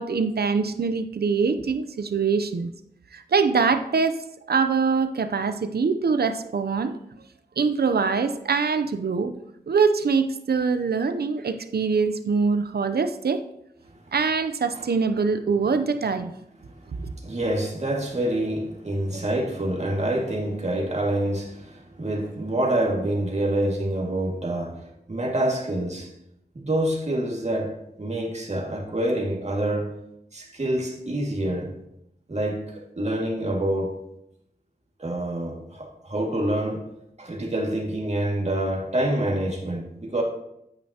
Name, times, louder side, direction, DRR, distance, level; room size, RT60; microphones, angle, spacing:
voice 1, 0.0-2.7 3.1-6.9 7.6-9.3 9.7-13.4 14.1-16.3 17.0-17.1, right 5 dB, 70° right, 10 dB, 0.6 m, -23 dB
voice 2, 16.6-26.1 26.5-27.7 28.0-29.9 30.3-31.7 32.3-34.0 35.0-36.8 37.2-40.2, right 1 dB, 45° right, 0 dB, 2.1 m, -27 dB
8.8 x 8.6 x 2.9 m, 0.80 s
wide cardioid pair, 60°, 17 cm